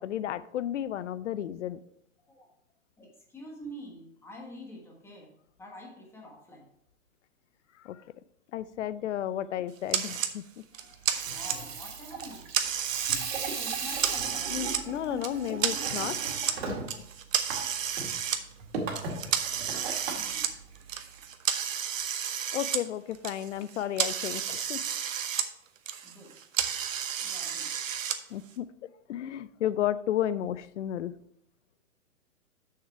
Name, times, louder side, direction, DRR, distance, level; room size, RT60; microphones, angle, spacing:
voice 1, 0.0-1.8 7.8-8.0 8.5-10.7 14.5-16.2 16.6-16.8 22.5-24.8 28.3-28.7 29.1-31.1, left 11 dB, 60° left, 16 dB, 0.6 m, -33 dB
voice 2, 3.0-5.3 5.6-6.7 11.2-12.5 13.5-14.8 20.1-20.5 26.0-26.4 27.2-27.7, equal, 5° left, 0 dB, 1.3 m, -47 dB
sound 1, 9.9-10.3 10.7-11.8 12.2-13.2 13.6-14.8 15.2-16.6 16.9-18.4 18.9-22.8 23.1-25.5 25.8-28.2, right 8 dB, 70° right, 1.0 m, -31 dB
Water tap faucet / Sink (filling or washing), 11.0-21.2, right 4 dB, 50° right, 2.0 m, -38 dB
6.7 x 6.6 x 4.6 m, 0.70 s
hypercardioid pair, 145°, 41 cm